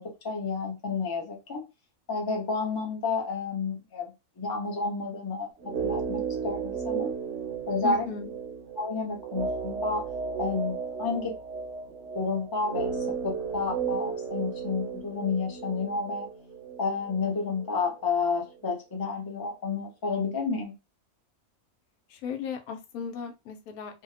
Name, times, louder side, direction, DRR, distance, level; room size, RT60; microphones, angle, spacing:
voice 1, 0.0-1.6 2.1-5.5 5.8-7.1 7.7-8.1 8.8-10.0 10.4-11.3 12.1-13.0 13.2-16.3 16.8-20.7, left 4 dB, 30° left, 0.4 m, -30 dB
sound 1, 5.6-17.7 18.0-18.1, right 6 dB, 65° right, 0.7 m, -34 dB
voice 2, 7.8-8.3 22.1-24.0, left 6 dB, 90° left, 1.1 m, -36 dB
2.7 x 2.1 x 2.4 m
omnidirectional pair, 1.5 m